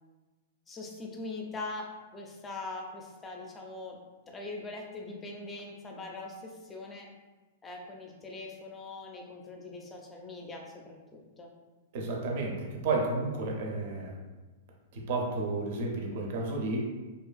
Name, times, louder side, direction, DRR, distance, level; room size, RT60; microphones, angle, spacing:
voice 1, 0.7-4.0 4.3-7.1 7.6-11.5, left 2 dB, 20° left, 0 dB, 0.4 m, -42 dB
voice 2, 11.9-14.1 14.9-16.9, right 2 dB, 55° right, 0 dB, 0.5 m, -32 dB
2.5 x 2.3 x 2.3 m, 1.2 s
hypercardioid pair, 130°, 0 cm